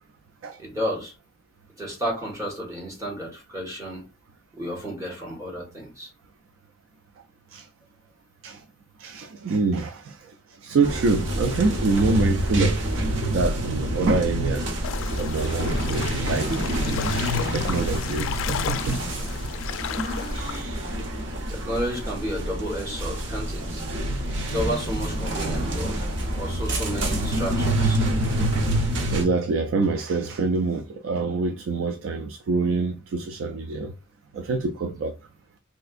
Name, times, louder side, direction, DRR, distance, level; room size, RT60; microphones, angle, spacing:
voice 1, 0.6-1.1 1.8-4.1 4.5-6.1 21.5-23.8 24.5-28.0, equal, 15° right, 1.2 m, -32 dB
voice 2, 9.0-13.0 13.2-16.8 17.5-19.2 20.3-21.0 29.1-33.9 34.3-35.2, right 4 dB, 85° right, 0.3 m, -26 dB
sound 1, 10.8-29.2, right 1 dB, 70° right, 0.8 m, -27 dB
sound 2, 14.8-20.6, left 9 dB, 85° left, 0.3 m, -33 dB
3.3 x 2.8 x 2.4 m
head